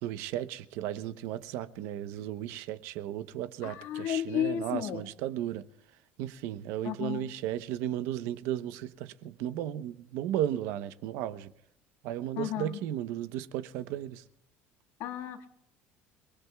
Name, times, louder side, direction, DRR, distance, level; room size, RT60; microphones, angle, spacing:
voice 1, 0.0-5.6 6.2-11.5 12.0-14.2, right 12 dB, 65° right, 0.9 m, -35 dB
voice 2, 3.6-5.1 6.8-7.2 12.4-12.8 15.0-15.5, left 11 dB, 60° left, 1.8 m, -33 dB
29.0 x 19.5 x 2.3 m
cardioid pair, 170°, 5 cm